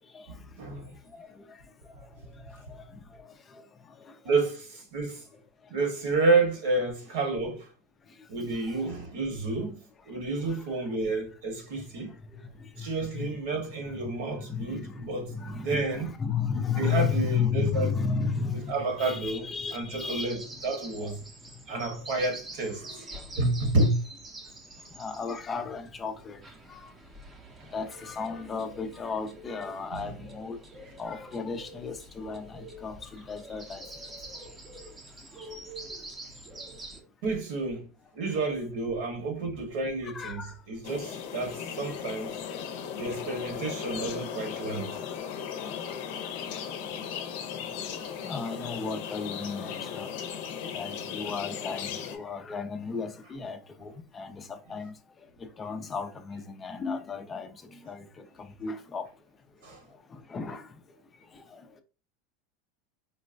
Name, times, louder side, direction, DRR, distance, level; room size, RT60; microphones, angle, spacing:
voice 1, 0.3-0.9 4.2-5.2 5.7-7.7 8.3-9.8 10.0-12.1 12.8-16.1 16.7-17.9 18.5-21.2 21.7-23.9 29.9-30.1 37.2-37.9 38.1-40.4 40.7-42.4 42.9-45.0 59.6-59.8, right 3 dB, 70° right, 1.3 m, -30 dB
voice 2, 12.8-13.3 14.5-15.0 15.3-20.3 21.0-21.1 25.0-26.4 26.8-26.9 27.7-30.6 31.0-33.8 40.1-40.5 43.3-43.4 48.1-50.1 50.7-54.9 55.6-58.0 58.6-59.1 60.3-60.6, left 6 dB, 25° left, 0.4 m, -33 dB
sound 1, 18.0-37.0, right 2 dB, 20° right, 0.6 m, -47 dB
sound 2, 40.8-52.2, left 8 dB, 65° left, 0.6 m, -37 dB
3.8 x 2.1 x 2.5 m
supercardioid pair, 130°, 0 cm